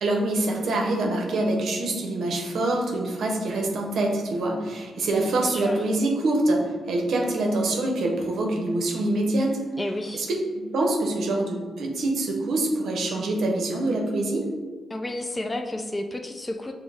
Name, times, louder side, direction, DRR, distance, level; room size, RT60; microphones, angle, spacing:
voice 1, 0.0-9.6 10.1-10.3 10.5-14.4, right 2 dB, 75° right, 1 dB, 0.6 m, -25 dB
voice 2, 5.3-5.8 9.8-10.3 14.9-16.7, left 1 dB, 20° left, 5 dB, 0.3 m, -31 dB
5.2 x 2.0 x 3.4 m, 1.4 s
cardioid pair, 75°, 0 cm